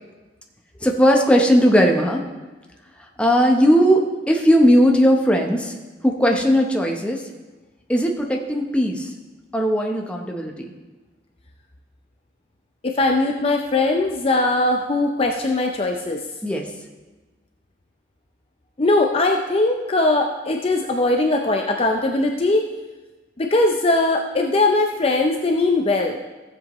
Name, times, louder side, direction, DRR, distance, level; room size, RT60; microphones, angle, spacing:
voice 1, 0.8-2.2 3.2-5.7 6.0-7.2 7.9-9.1 9.5-10.7 16.4-16.6, equal, 5° left, 1 dB, 0.8 m, -18 dB
voice 2, 12.8-16.2 18.8-22.7 23.4-26.2, left 2 dB, 30° left, 2 dB, 0.5 m, -20 dB
15.0 x 7.5 x 3.1 m, 1.2 s
head